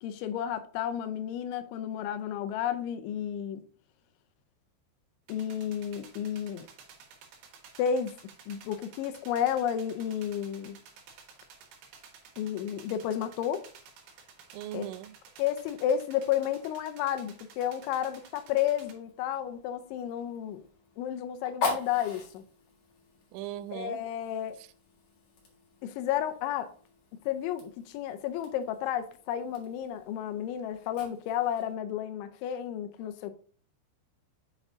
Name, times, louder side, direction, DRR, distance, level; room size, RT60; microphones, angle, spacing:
voice 1, 0.0-3.6 5.3-6.7 7.8-8.1 8.5-10.8 12.4-13.6 14.7-14.9 15.4-20.6 21.0-22.4 23.7-24.6 25.8-26.7 27.3-33.3, left 9 dB, 85° left, 3.0 m, -32 dB
sound 1, 5.3-18.9, right 6 dB, 70° right, 3.4 m, -54 dB
voice 2, 14.5-15.1 23.3-24.0, right 13 dB, 90° right, 3.0 m, -38 dB
Fire, 18.5-31.7, left 3 dB, 50° left, 2.3 m, -43 dB
8.0 x 5.6 x 2.7 m
omnidirectional pair, 5.4 m